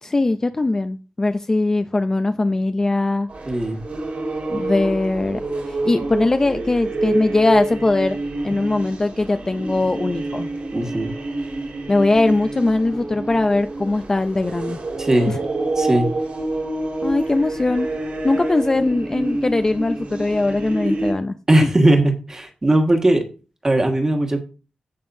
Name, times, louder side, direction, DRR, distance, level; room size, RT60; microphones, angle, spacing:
voice 1, 0.0-3.3 4.5-5.4 5.7-8.2 8.4-10.5 11.9-14.8 15.3-15.4 17.0-17.9 18.2-21.3, left 2 dB, 20° left, 9 dB, 0.4 m, -20 dB
sound 1, 3.3-21.1, right 2 dB, 65° right, 2.8 m, -27 dB
voice 2, 3.5-3.8 10.7-11.1 15.0-15.3 15.8-16.1 21.5-23.2 23.6-24.4, right 1 dB, 20° right, 3 dB, 1.6 m, -18 dB
16.5 x 5.5 x 2.7 m, 0.34 s
wide cardioid pair, 180°, 3 cm